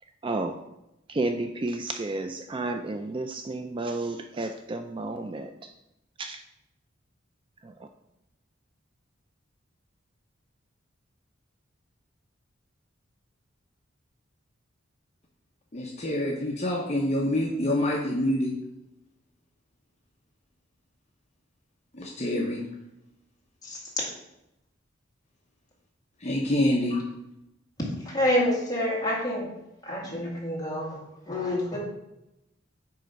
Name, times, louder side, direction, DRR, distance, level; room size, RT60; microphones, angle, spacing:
voice 1, 0.2-0.5 1.1-5.7 6.2-6.4 7.6-7.9, right 2 dB, 25° right, 6 dB, 0.3 m, -32 dB
voice 2, 15.7-18.6 21.9-22.6 26.2-27.0, left 1 dB, 35° left, -2 dB, 0.9 m, -26 dB
voice 3, 28.0-29.5 29.8-31.0 31.3-31.8, left 1 dB, 20° left, -5 dB, 2.2 m, -27 dB
9.5 x 3.4 x 5.1 m, 0.88 s
head